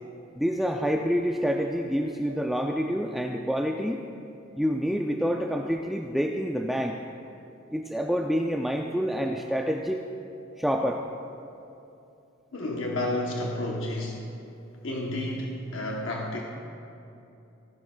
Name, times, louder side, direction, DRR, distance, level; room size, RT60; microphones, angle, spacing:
voice 1, 0.4-4.0 4.6-7.0 7.7-10.0 10.6-11.0, equal, ahead, 1 dB, 0.3 m, -27 dB
sound 1, 9.3-12.3, left 2 dB, 50° right, 1.0 m, -53 dB
voice 2, 12.5-14.3 14.8-16.4, left 1 dB, 70° left, -1 dB, 1.0 m, -31 dB
17.5 x 11.0 x 2.3 m, 2.7 s
head